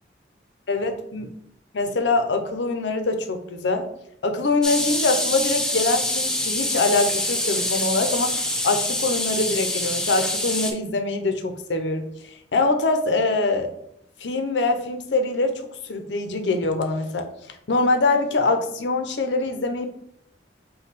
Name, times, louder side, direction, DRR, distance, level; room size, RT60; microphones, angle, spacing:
voice 1, 0.7-1.3 1.7-3.9 4.2-13.7 14.2-19.9, left 3 dB, 75° left, 6 dB, 0.6 m, -24 dB
sound 1, 4.6-10.7, left 1 dB, 5° left, 0.4 m, -25 dB
5.3 x 2.2 x 4.0 m, 0.72 s
head